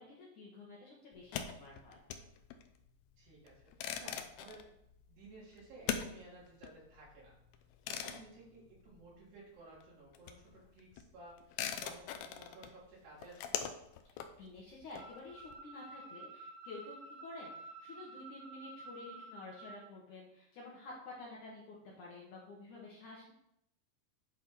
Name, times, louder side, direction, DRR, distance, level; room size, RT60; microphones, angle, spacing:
voice 1, 0.0-2.0 14.1-23.3, left 2 dB, 60° left, -4 dB, 2.2 m, -51 dB
sound 1, 1.1-9.5 9.8-15.5, left 9 dB, 80° left, 2.1 m, -43 dB
voice 2, 3.2-4.7 5.1-7.3 7.9-13.7, right 2 dB, 70° right, -6 dB, 5.0 m, -55 dB
sound 2, 15.0-19.8, right 2 dB, 15° right, 1.3 m, -51 dB
10.0 x 4.4 x 4.8 m, 0.76 s
omnidirectional pair, 4.9 m